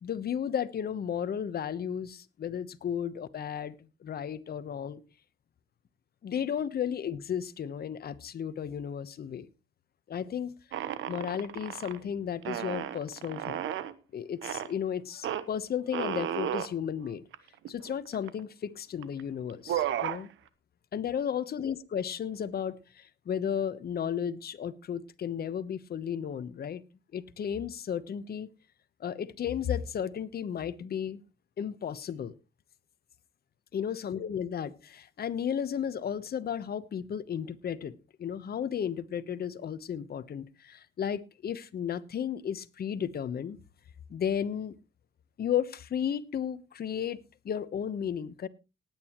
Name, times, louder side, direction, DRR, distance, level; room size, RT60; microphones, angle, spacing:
voice 1, 0.0-3.7 4.0-5.0 6.2-9.5 10.1-10.5 11.1-13.6 14.1-17.2 17.7-20.3 20.9-26.8 27.1-28.5 29.0-31.2 31.6-32.3 33.7-43.6 44.1-44.7 45.4-48.5, left 8 dB, 50° left, 1.1 m, -34 dB
sound 1, 10.7-12.0 12.4-13.9 14.4-14.7 15.2-15.4 15.9-16.7 17.3-17.4 17.7-18.4 19.0-19.2 19.5-20.2, right 10 dB, 80° right, 1.1 m, -33 dB
19.0 x 9.3 x 3.1 m
cardioid pair, 90°, 20 cm